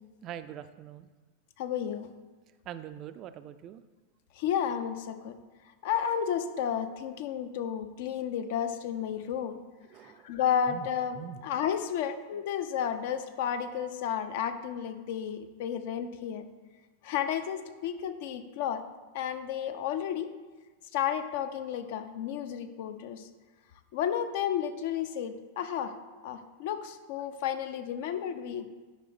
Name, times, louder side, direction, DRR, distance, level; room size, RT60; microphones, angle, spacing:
voice 1, 0.2-1.1 2.7-3.8 9.9-10.3 10.7-10.9 11.2-11.4, right 10 dB, 35° right, 12 dB, 0.4 m, -43 dB
voice 2, 1.6-2.1 4.4-5.4 5.8-9.6 10.0-16.5 17.0-18.8 19.1-20.3 20.9-23.3 23.9-25.9 26.2-28.7, left 9 dB, 50° left, 9 dB, 0.6 m, -32 dB
10.0 x 5.4 x 3.4 m, 1.3 s
figure-of-eight pair, 90°, 0 cm